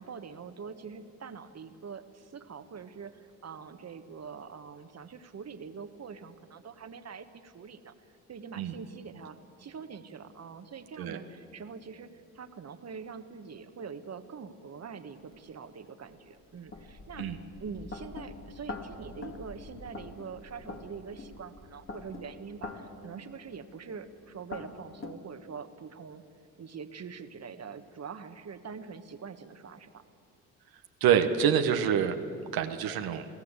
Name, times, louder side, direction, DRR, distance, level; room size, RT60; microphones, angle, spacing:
voice 1, 0.0-7.9 8.3-17.3 17.6-26.2 26.6-30.0, right 6 dB, 45° right, 9 dB, 1.5 m, -44 dB
sound 1, 15.3-15.4 16.1-25.1, left 3 dB, 35° left, 2.3 m, -45 dB
voice 2, 31.0-32.2 32.5-33.2, right 8 dB, 80° right, 6 dB, 1.3 m, -26 dB
23.0 x 16.5 x 8.2 m, 2.6 s
supercardioid pair, 65°, 36 cm